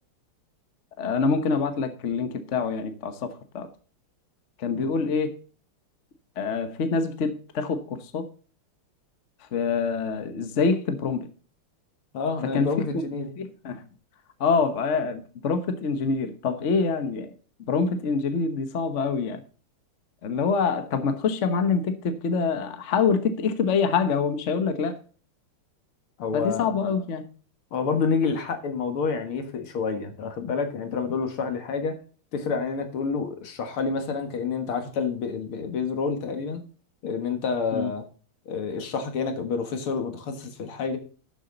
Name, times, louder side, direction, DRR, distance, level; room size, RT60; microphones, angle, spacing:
voice 1, 1.0-3.7 4.6-5.4 6.4-8.3 9.5-11.3 12.5-13.1 13.4-13.8 14.4-17.3 17.7-19.4 20.2-25.0 26.3-27.3 37.7-37.9, left 5 dB, 45° left, 9 dB, 1.1 m, -25 dB
voice 2, 12.1-13.3 26.2-26.8 27.7-32.0 32.3-36.6 37.0-38.0 38.5-41.0, left 5 dB, 75° left, 6 dB, 2.5 m, -28 dB
12.0 x 7.3 x 3.9 m, 0.40 s
omnidirectional pair, 2.4 m